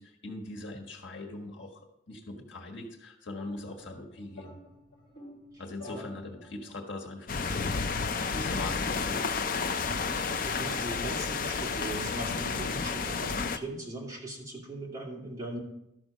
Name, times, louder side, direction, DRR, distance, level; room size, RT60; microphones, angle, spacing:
voice 1, 0.0-4.6 5.6-9.3, left 2 dB, 75° left, 1 dB, 1.5 m, -41 dB
sound 1, 3.3-6.8, left 2 dB, 25° left, 4.0 m, -50 dB
voice 2, 5.5-6.1 9.9-15.6, right 1 dB, 20° right, -4 dB, 2.5 m, -40 dB
sound 2, 7.3-13.6, left 5 dB, 45° left, 0.5 m, -31 dB
13.0 x 6.1 x 5.1 m, 0.83 s
head